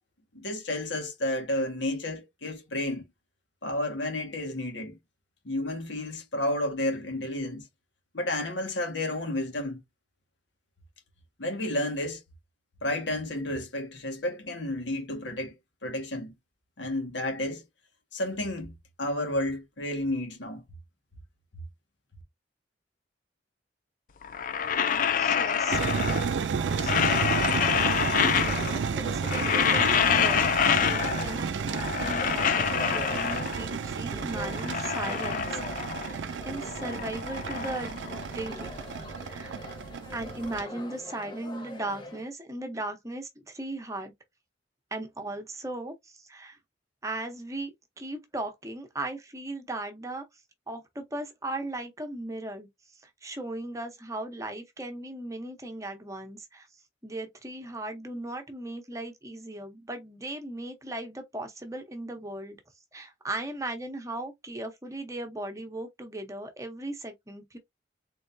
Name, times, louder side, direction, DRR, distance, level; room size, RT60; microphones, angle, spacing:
voice 1, 0.3-3.0 3.6-5.0 5.4-7.7 8.1-9.8 11.4-12.2 12.8-15.5 15.8-16.3 16.8-17.6 18.1-18.7 19.0-20.6, left 1 dB, 90° left, 1.6 m, -31 dB
sound 1, 24.2-26.4 26.7-28.9 29.2-31.4 31.7-33.8 34.2-36.2 36.5-38.7, left 8 dB, 45° left, 0.4 m, -27 dB
voice 2, 24.8-25.8 26.4-27.2 29.0-30.5 30.8-35.6 36.0-38.0 38.3-38.8 39.3-39.6 40.1-44.1 44.9-46.6 47.0-50.3 50.7-52.7 53.0-56.7 57.0-62.6 62.9-67.6, right 2 dB, 15° right, 0.8 m, -37 dB
sound 2, 25.7-40.6, right 6 dB, 85° right, 0.4 m, -32 dB
Chatter, 28.1-42.3, left 2 dB, 25° left, 1.1 m, -44 dB
3.9 x 3.4 x 2.6 m
head